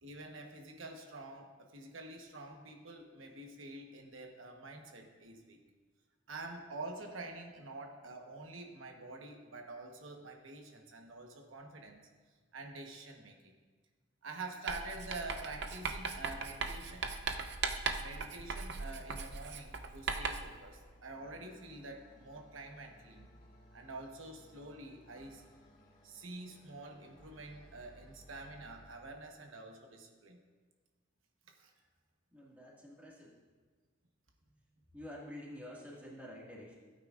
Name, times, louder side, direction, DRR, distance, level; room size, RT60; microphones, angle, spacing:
voice 1, 0.0-5.6 6.3-12.1 12.5-13.6 14.2-17.1 18.0-23.3 23.7-25.4 26.0-30.4 31.6-31.7, right 2 dB, 90° right, 2 dB, 1.2 m, -47 dB
Writing, 14.7-20.6, right 4 dB, 60° right, 0.6 m, -38 dB
sound 1, 17.3-28.9, equal, 40° left, 1.7 m, -61 dB
voice 2, 32.3-33.4 34.9-36.8, left 1 dB, 10° right, -5 dB, 1.9 m, -49 dB
15.5 x 9.1 x 2.5 m, 1.4 s
head